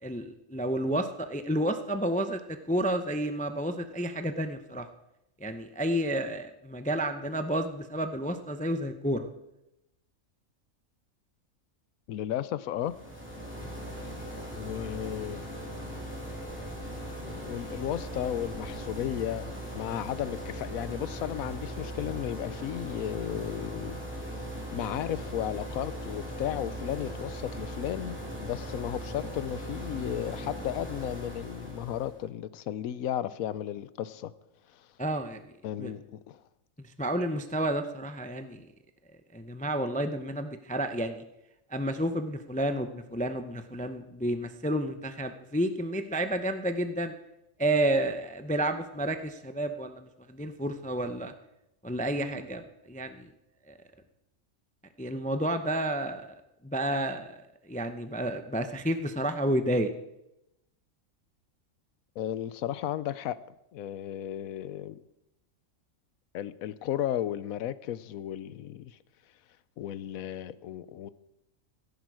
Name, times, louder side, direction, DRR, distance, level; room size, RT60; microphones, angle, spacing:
voice 1, 0.0-4.9 5.4-9.3 35.0-35.5 35.8-35.9 36.8-38.7 39.3-41.2 41.7-47.1 47.6-51.3 51.8-53.3 53.7-53.8 55.0-56.3 56.6-59.9, right 1 dB, 10° left, 0.4 m, -31 dB
voice 2, 12.1-13.0 14.6-15.5 15.9-16.0 17.2-24.3 24.7-28.1 28.4-34.3 34.7-34.9 35.6-36.4 62.2-63.4 63.7-65.0 66.3-69.0 69.8-71.1, left 11 dB, 90° left, 1.1 m, -34 dB
sound 1, 12.8-32.2, equal, 10° right, 2.7 m, -39 dB
16.0 x 10.5 x 4.8 m
omnidirectional pair, 1.4 m